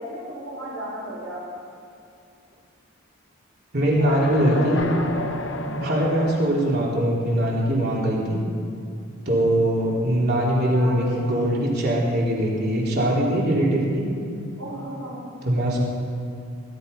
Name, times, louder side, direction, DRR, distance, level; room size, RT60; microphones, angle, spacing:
voice 1, 0.0-1.4 3.9-5.3 10.7-11.4 14.6-15.3, equal, 70° right, -5 dB, 5.1 m, -34 dB
voice 2, 3.7-4.9 5.7-8.4 9.3-14.1 15.4-15.8, right 1 dB, 50° right, -4 dB, 3.9 m, -22 dB
sound 1, 4.0-6.9, left 2 dB, 60° left, 1.1 m, -31 dB
20.5 x 12.0 x 5.5 m, 2.5 s
head